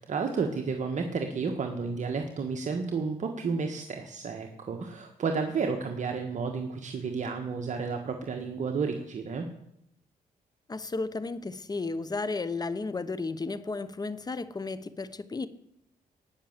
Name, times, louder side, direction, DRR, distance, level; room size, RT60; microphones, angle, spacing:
voice 1, 0.0-9.5, right 5 dB, 50° right, 1.5 m, -31 dB
voice 2, 10.7-15.5, left 3 dB, 25° left, 0.9 m, -33 dB
19.0 x 6.4 x 7.4 m
cardioid pair, 85°, 15 cm